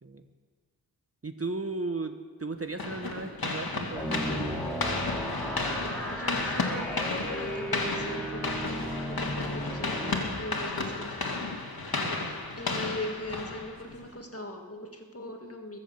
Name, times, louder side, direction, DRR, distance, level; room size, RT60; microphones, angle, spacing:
voice 1, 1.2-2.1 2.4-4.2 11.9-12.3, right 3 dB, 35° right, 7 dB, 1.0 m, -35 dB
sound 1, 2.8-14.1, left 3 dB, 60° left, 2.1 m, -33 dB
sound 2, 3.9-10.2, equal, 5° left, 3.4 m, -35 dB
voice 2, 6.1-11.3 12.2-15.8, left 1 dB, 35° left, 3 dB, 2.0 m, -40 dB
22.0 x 7.6 x 7.2 m, 1.5 s
wide cardioid pair, 75°, 41 cm